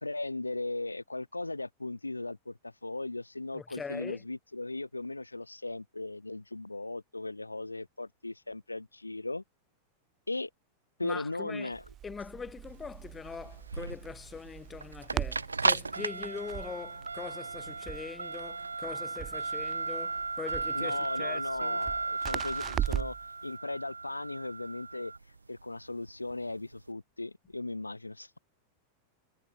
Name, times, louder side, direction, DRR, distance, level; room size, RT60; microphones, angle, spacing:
voice 1, 0.0-9.4 10.3-10.5 11.0-11.8 20.7-23.2 23.4-25.1 25.5-28.3, left 2 dB, 85° left, 0.8 m, -37 dB
voice 2, 3.5-4.2 11.0-11.7 12.0-21.8, left 5 dB, 15° left, 3.4 m, -42 dB
Crackle, 11.7-23.3, right 11 dB, 30° right, 0.8 m, -40 dB
sound 1, 12.7-26.8, right 4 dB, 80° right, 0.6 m, -35 dB
figure-of-eight pair, 90°, 0 cm